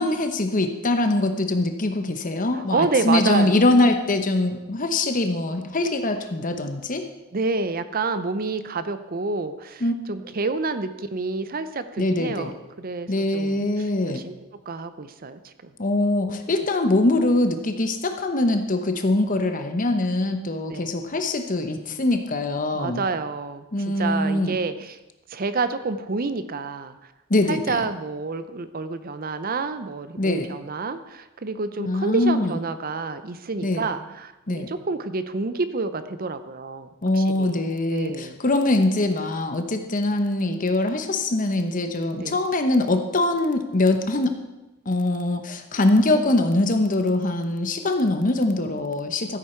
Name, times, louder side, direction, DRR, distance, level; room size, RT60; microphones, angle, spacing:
voice 1, 0.0-7.0 9.8-9.9 12.0-12.5 13.1-14.2 15.8-23.0 23.7-24.5 27.3-27.8 30.2-30.5 31.8-32.6 33.6-33.9 34.5-34.7 37.0-44.3 44.9-49.4, left 2 dB, 40° left, 7 dB, 1.0 m, -23 dB
voice 2, 2.5-3.6 7.3-13.6 14.0-14.3 14.7-15.7 20.7-20.9 22.7-25.0 25.3-27.0 27.5-36.9 37.1-38.4 42.1-42.4, right 4 dB, 45° right, 11 dB, 0.6 m, -28 dB
14.5 x 8.3 x 4.5 m, 1.0 s
head